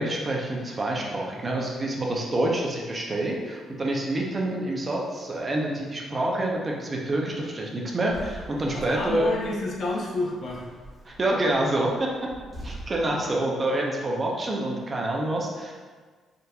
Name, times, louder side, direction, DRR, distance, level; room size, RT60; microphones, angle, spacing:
voice 1, 0.0-9.3 11.1-12.1 12.6-15.8, right 1 dB, 30° right, -1 dB, 0.6 m, -27 dB
sound 1, 8.1-13.1, right 1 dB, 15° right, 1.1 m, -43 dB
voice 2, 8.7-10.6, left 2 dB, 55° left, -2 dB, 0.6 m, -29 dB
3.7 x 2.7 x 2.3 m, 1.5 s
cardioid pair, 90°, 0 cm